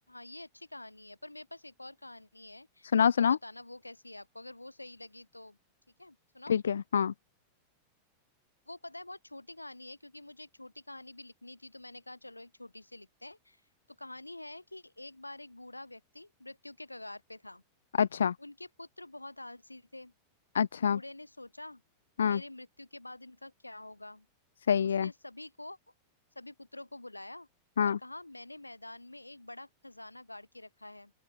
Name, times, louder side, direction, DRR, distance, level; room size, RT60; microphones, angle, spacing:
voice 1, 0.0-5.6 6.0-6.6 8.7-13.6 13.9-17.6 18.4-20.1 20.9-21.8 22.3-24.3 24.8-25.8 26.4-27.5 27.8-31.1, left 2 dB, 85° left, 3.8 m, -47 dB
voice 2, 2.9-3.4 6.5-7.1 18.0-18.3 20.5-21.0 22.2-22.4 24.7-25.1 27.8-28.0, left 7 dB, 70° left, 0.8 m, -26 dB
open air
figure-of-eight pair, 90°, 0 cm